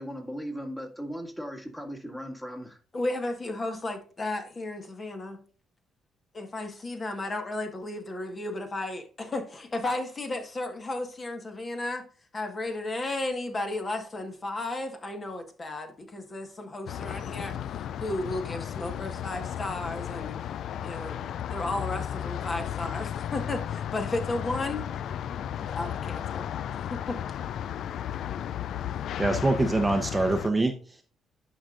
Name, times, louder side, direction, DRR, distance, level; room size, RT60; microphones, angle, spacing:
voice 1, 0.0-2.8, equal, 10° left, 2.0 m, -37 dB
voice 2, 2.9-5.4 6.3-12.0 12.3-20.4 20.8-24.9 25.6-27.2, left 2 dB, 35° left, 1.5 m, -34 dB
sound 1, 16.9-30.5, left 10 dB, 70° left, 0.3 m, -34 dB
voice 3, 29.2-31.0, right 2 dB, 15° right, 0.8 m, -25 dB
11.0 x 5.1 x 2.5 m
cardioid pair, 90°, 0 cm